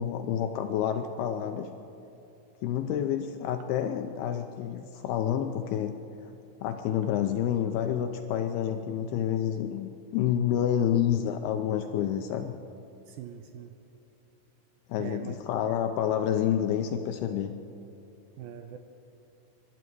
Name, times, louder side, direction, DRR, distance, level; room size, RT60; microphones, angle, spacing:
voice 1, 0.0-1.7 2.6-6.0 6.2-6.3 6.6-12.6 14.9-17.5, left 9 dB, 80° left, 6 dB, 2.4 m, -28 dB
voice 2, 13.1-13.8 15.0-15.4 18.4-18.8, right 9 dB, 80° right, 7 dB, 2.2 m, -41 dB
25.0 x 12.0 x 4.7 m, 2.9 s
omnidirectional pair, 4.8 m